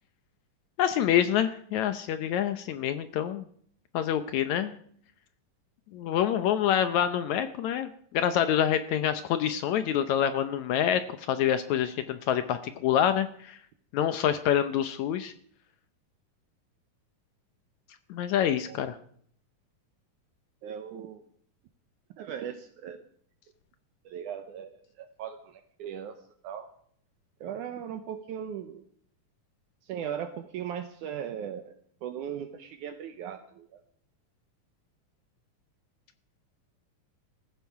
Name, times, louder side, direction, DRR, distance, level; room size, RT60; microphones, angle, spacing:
voice 1, 0.8-3.4 3.9-4.7 5.9-13.6 13.9-15.3 18.1-19.0, left 10 dB, 75° left, 11 dB, 1.7 m, -26 dB
voice 2, 20.6-21.2 22.2-23.0 24.1-26.2 26.4-26.7 27.4-28.8 29.8-31.7 32.0-33.8, right 9 dB, 70° right, 8 dB, 2.2 m, -38 dB
19.0 x 15.0 x 4.7 m, 0.62 s
omnidirectional pair, 4.0 m